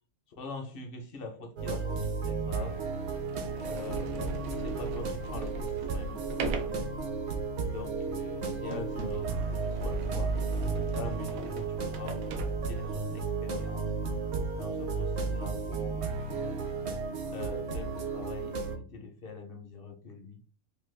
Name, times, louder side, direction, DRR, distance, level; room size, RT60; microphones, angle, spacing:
voice 1, 0.4-2.8 3.6-6.8 7.7-10.4 11.0-13.9 14.6-16.6 17.3-20.4, left 3 dB, 55° left, 3 dB, 0.7 m, -44 dB
sound 1, 1.6-18.8, right 4 dB, 60° right, 0.8 m, -33 dB
Sliding door, 1.9-2.0 2.7-2.8 3.3-13.2, right 2 dB, 85° right, 1.1 m, -40 dB
3.1 x 2.2 x 3.2 m, 0.41 s
omnidirectional pair, 1.5 m